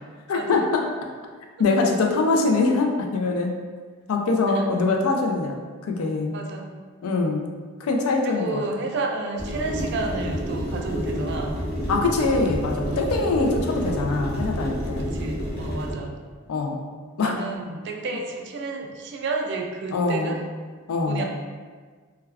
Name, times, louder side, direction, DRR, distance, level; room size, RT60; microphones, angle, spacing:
voice 1, 0.3-1.1 1.6-3.6 4.1-6.4 7.0-7.5 7.8-8.6 11.9-15.2 16.5-16.9 17.2-17.4 19.9-20.4 20.9-21.2, left 3 dB, 75° left, 2 dB, 0.4 m, -23 dB
voice 2, 6.3-6.7 8.2-11.6 15.0-16.1 17.2-20.4 21.1-21.2, right 3 dB, 50° right, 2 dB, 0.3 m, -31 dB
sound 1, 9.4-15.9, equal, 45° left, 0.7 m, -29 dB
2.2 x 2.2 x 3.3 m, 1.5 s
head